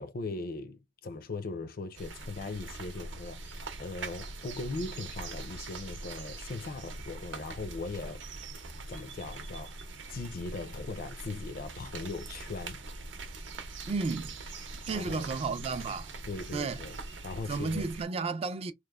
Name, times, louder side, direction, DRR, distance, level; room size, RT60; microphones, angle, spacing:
voice 1, 0.0-8.2 8.9-9.8 10.1-12.8 14.9-15.3 16.3-17.0 17.2-17.9, left 3 dB, 50° left, 0.4 m, -39 dB
sound 1, 2.0-18.1, right 3 dB, 85° right, 0.7 m, -42 dB
voice 2, 13.9-14.4 14.9-16.1 16.5-16.8 17.5-18.7, right 4 dB, 35° right, 0.3 m, -32 dB
3.1 x 2.0 x 2.3 m
head